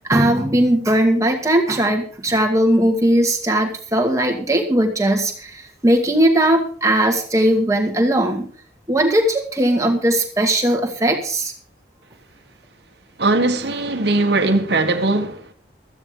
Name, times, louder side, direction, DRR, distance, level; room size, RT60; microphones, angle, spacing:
voice 1, 0.1-5.5 5.8-8.5 8.9-11.5, right 1 dB, 15° right, 2.1 m, -18 dB
voice 2, 13.2-15.5, right 2 dB, 65° right, 1.5 m, -19 dB
16.0 x 13.5 x 3.8 m
head